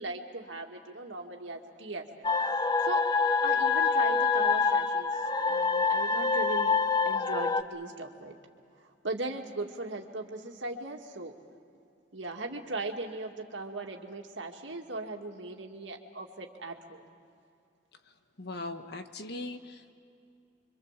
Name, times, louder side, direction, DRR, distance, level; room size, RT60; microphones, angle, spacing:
voice 1, 0.0-2.3 2.8-3.0 3.4-6.8 7.1-8.4 9.0-11.3 12.1-17.0, right 2 dB, 80° right, 2 dB, 2.3 m, -38 dB
sound 1, 2.2-7.6, left 4 dB, 20° left, 0.7 m, -26 dB
voice 2, 18.4-19.9, left 2 dB, 60° left, 7 dB, 1.4 m, -39 dB
26.5 x 25.0 x 7.5 m, 2.5 s
head